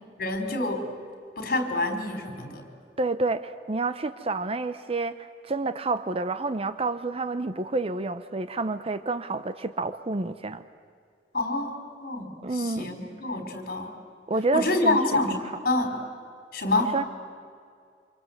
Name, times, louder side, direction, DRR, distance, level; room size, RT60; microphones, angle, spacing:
voice 1, 0.2-0.9 1.4-2.6 11.3-13.9 14.5-16.0 16.5-17.0, left 2 dB, 55° left, 4.3 m, -27 dB
voice 2, 3.0-10.6 12.4-13.0 14.3-15.0 16.7-17.0, right 3 dB, 35° right, 0.7 m, -29 dB
28.0 x 26.5 x 8.0 m
head